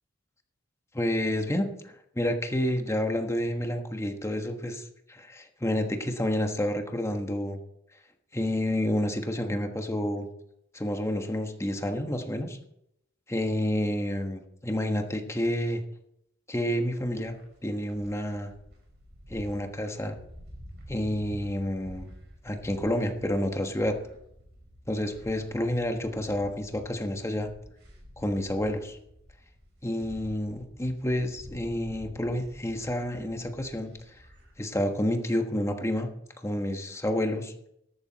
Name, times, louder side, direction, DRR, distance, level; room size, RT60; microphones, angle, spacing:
voice 1, 0.9-7.6 8.3-10.3 10.7-12.6 13.3-15.8 16.5-17.3 17.6-18.5 19.3-20.2 20.9-22.1 22.4-24.0 24.9-27.5 28.2-29.0 29.8-33.9 34.6-36.1 36.4-37.5, left 1 dB, 15° left, 5 dB, 1.3 m, -29 dB
sound 1, 17.1-34.5, equal, 60° right, 5.3 m, -50 dB
13.5 x 12.0 x 4.1 m, 0.77 s
head